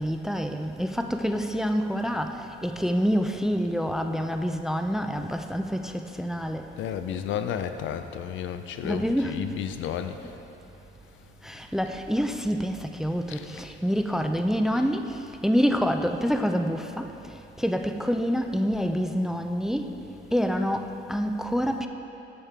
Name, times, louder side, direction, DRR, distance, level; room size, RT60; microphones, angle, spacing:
voice 1, 0.0-6.7 8.8-9.4 11.4-15.1 15.4-17.1 17.6-19.9 20.3-21.9, equal, ahead, 6 dB, 0.3 m, -27 dB
voice 2, 6.8-10.2 13.3-13.4, left 9 dB, 75° left, 9 dB, 0.5 m, -32 dB
8.9 x 6.5 x 3.5 m, 2.9 s
cardioid pair, 90°, 20 cm